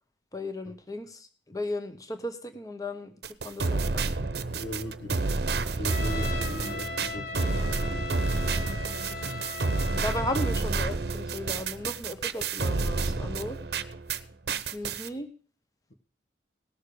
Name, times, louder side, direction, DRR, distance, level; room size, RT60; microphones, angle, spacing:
voice 1, 0.3-4.1 8.9-9.4 9.9-13.6 14.7-15.3, left 1 dB, 20° left, 8 dB, 1.1 m, -36 dB
sound 1, 3.2-14.2 14.5-15.1, right 3 dB, 65° right, 0.8 m, -29 dB
voice 2, 4.5-5.4 5.7-8.1 13.2-13.4 14.6-14.7, left 1 dB, 90° left, 7 dB, 1.6 m, -40 dB
Trumpet, 5.9-10.6, left 4 dB, 55° left, 3.0 m, -38 dB
18.0 x 6.6 x 5.0 m, 0.42 s
head